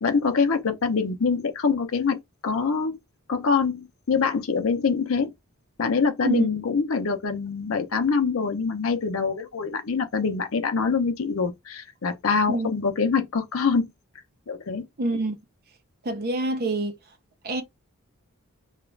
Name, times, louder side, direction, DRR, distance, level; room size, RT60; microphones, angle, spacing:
voice 1, 0.0-2.2 2.4-3.0 3.3-5.3 5.8-13.8 14.5-14.8, left 5 dB, 65° left, 0.6 m, -24 dB
voice 2, 15.0-15.4 16.0-17.0 17.4-17.6, right 2 dB, 45° right, 0.6 m, -26 dB
2.4 x 2.3 x 3.1 m
head